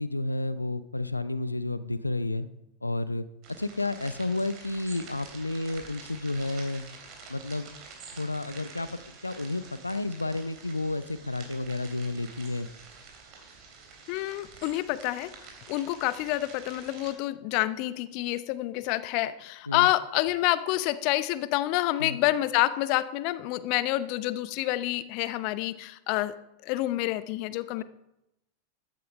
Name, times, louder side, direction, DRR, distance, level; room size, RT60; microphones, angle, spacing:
voice 1, 0.0-2.5 2.8-3.2 3.6-6.9 7.3-7.7 8.1-12.7 19.7-19.9 22.0-22.2, left 2 dB, 85° left, 15 dB, 0.6 m, -31 dB
sound 1, 3.4-17.1, right 5 dB, 40° right, 3.2 m, -48 dB
voice 2, 14.1-15.3 15.7-26.3 26.6-27.8, left 16 dB, 45° left, 15 dB, 0.7 m, -28 dB
13.5 x 9.4 x 5.3 m, 0.87 s
figure-of-eight pair, 90°, 0 cm